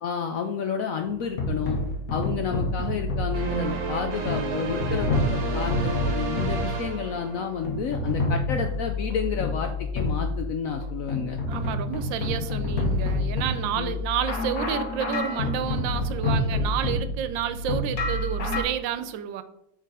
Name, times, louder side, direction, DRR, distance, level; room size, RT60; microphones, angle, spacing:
voice 1, 0.0-1.8 2.1-11.4 12.4-12.5 13.8-13.9, left 6 dB, 75° left, 5 dB, 0.8 m, -30 dB
sound 1, 1.0-18.6, left 2 dB, 55° left, 1.6 m, -28 dB
sound 2, 3.3-7.8, right 4 dB, 60° right, 1.3 m, -32 dB
voice 2, 11.5-19.4, right 9 dB, 90° right, 11 dB, 1.3 m, -30 dB
6.6 x 3.9 x 4.8 m, 0.77 s
omnidirectional pair, 2.0 m